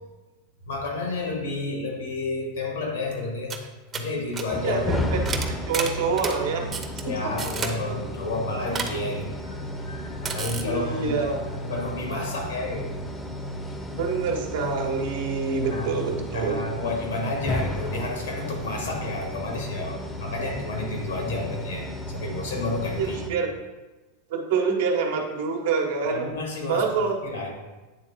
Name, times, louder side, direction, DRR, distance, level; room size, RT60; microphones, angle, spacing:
voice 1, 0.7-3.6 3.9-4.9 5.1-5.2 7.0-12.9 15.6-15.9 16.3-23.2 26.0-27.5, left 2 dB, 80° left, 1 dB, 1.7 m, -31 dB
sound 1, 3.2-3.3 3.5-3.7 3.9-4.1 4.3-4.4 5.3-6.4 6.7-7.0 7.4-7.8 8.7-8.9 10.2-10.6, right 5 dB, 25° right, 0.8 m, -30 dB
sound 2, 4.5-23.3, equal, 20° left, 0.7 m, -33 dB
voice 2, 4.6-5.4 5.7-6.7 10.6-11.4 14.0-16.6 22.9-23.5 24.3-26.3 26.7-27.2, right 5 dB, 70° right, 2 dB, 1.1 m, -26 dB
8.7 x 3.5 x 3.6 m, 1.2 s
hypercardioid pair, 100°, 0 cm